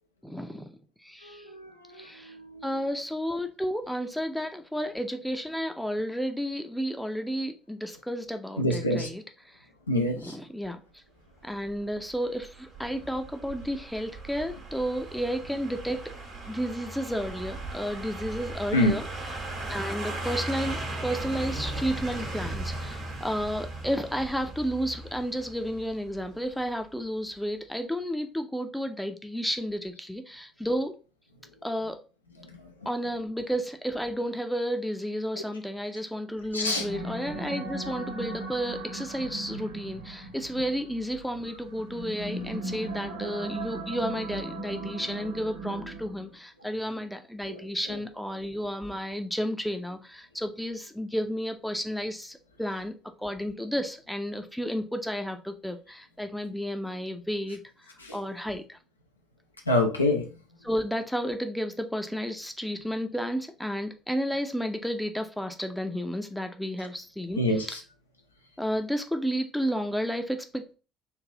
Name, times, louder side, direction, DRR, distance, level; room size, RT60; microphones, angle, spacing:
voice 1, 0.2-0.7 1.0-1.5 2.0-2.3 2.6-9.7 10.2-11.0 11.4-16.1 16.5-19.0 19.4-30.9 31.6-32.0 32.9-57.6 58.1-58.8 60.6-67.4 68.6-70.7, equal, ahead, 0.6 m, -32 dB
voice 2, 1.2-2.9 8.6-9.1 9.9-10.4 18.7-18.9 32.6-32.7 35.3-35.4 36.5-36.9 47.5-48.0 58.0-58.2 59.7-60.3 67.4-67.8, left 1 dB, 85° left, 0.5 m, -27 dB
sound 1, 11.7-26.6 26.9-27.0, right 2 dB, 50° right, 1.3 m, -37 dB
sound 2, 36.5-46.4, right 2 dB, 85° right, 1.3 m, -38 dB
3.3 x 2.6 x 3.7 m
figure-of-eight pair, 55°, 0 cm